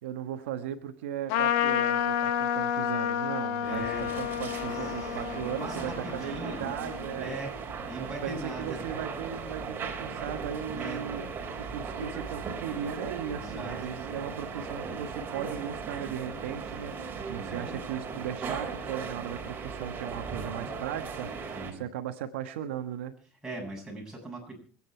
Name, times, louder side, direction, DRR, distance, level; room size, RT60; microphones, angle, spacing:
voice 1, 0.0-7.3 8.2-11.2 11.7-23.1, right 9 dB, 90° right, 7 dB, 1.4 m, -37 dB
Trumpet, 1.3-7.1, left 10 dB, 75° left, 1.4 m, -30 dB
voice 2, 3.6-4.1 4.7-5.2 5.6-6.7 7.2-7.6 7.9-8.8 10.7-11.0 13.4-13.8 17.4-17.8 21.5-21.8 23.4-24.6, right 2 dB, 10° right, -1 dB, 7.7 m, -40 dB
sound 1, 3.6-21.7, right 5 dB, 30° right, 3.5 m, -38 dB
26.0 x 9.2 x 4.5 m, 0.43 s
supercardioid pair, 105°, 6 cm